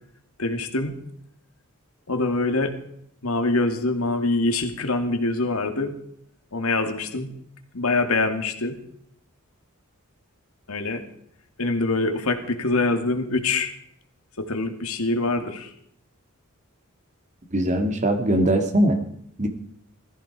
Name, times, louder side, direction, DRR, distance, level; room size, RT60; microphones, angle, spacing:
voice 1, 0.4-1.0 2.1-2.8 3.2-5.9 6.5-7.3 7.7-8.8 10.7-11.0 11.6-13.7 14.4-15.7, left 2 dB, 80° left, 7 dB, 2.3 m, -24 dB
voice 2, 17.5-19.0 19.4-19.5, right 1 dB, 35° right, 6 dB, 2.2 m, -21 dB
18.0 x 15.0 x 4.9 m, 0.70 s
head